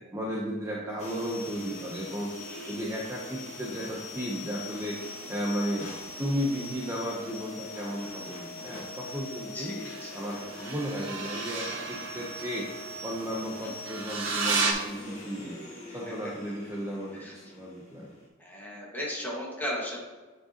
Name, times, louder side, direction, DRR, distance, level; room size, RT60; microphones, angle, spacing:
voice 1, 0.1-2.3 2.7-5.0 5.3-5.9 6.2-9.7 10.1-12.7 13.0-15.6 15.9-18.1, equal, 15° right, -4 dB, 0.7 m, -34 dB
sound 1, 1.0-18.3, left 3 dB, 35° left, 1.9 m, -43 dB
voice 2, 2.4-2.7 9.5-10.1 17.2-17.3 18.4-20.0, left 1 dB, 10° left, -4 dB, 1.6 m, -36 dB
sound 2, 4.4-7.5 9.8-14.7, right 4 dB, 70° right, 1.1 m, -35 dB
9.1 x 4.8 x 2.9 m, 1.3 s
head